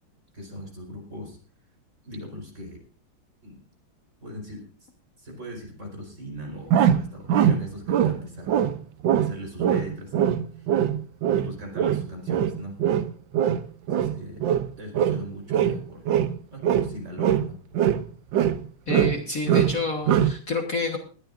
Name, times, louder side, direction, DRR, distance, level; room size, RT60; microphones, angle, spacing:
voice 1, 0.3-1.4 2.0-2.8 3.4-3.6 4.2-4.9 5.2-8.6 9.1-10.7 11.4-12.8 13.9-14.4 14.8-16.1 16.5-17.6, equal, 35° right, 1 dB, 4.8 m, -39 dB
sound 1, 6.7-8.2 8.5-8.8 9.0-9.3 9.6-15.2 15.5-16.4 16.6-18.1 18.3-19.2 19.5-19.8 20.1-20.4, right 9 dB, 70° right, 1.4 m, -22 dB
voice 2, 18.9-21.0, left 3 dB, 45° left, 3 dB, 1.8 m, -28 dB
20.5 x 13.0 x 2.6 m, 0.38 s
omnidirectional pair, 2.2 m